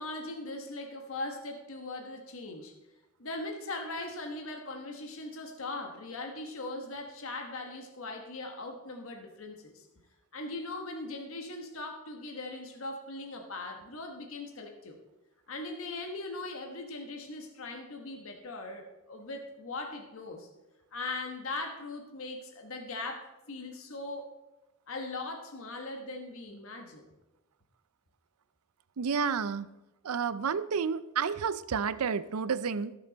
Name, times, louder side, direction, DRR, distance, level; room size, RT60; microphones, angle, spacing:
voice 1, 0.0-2.7 3.2-9.8 10.3-15.0 15.5-20.5 20.9-24.3 24.9-27.1, left 2 dB, 70° left, 4 dB, 1.3 m, -40 dB
voice 2, 29.0-29.7 30.0-33.0, right 6 dB, 90° right, 16 dB, 0.5 m, -30 dB
17.5 x 6.5 x 4.0 m, 1.0 s
head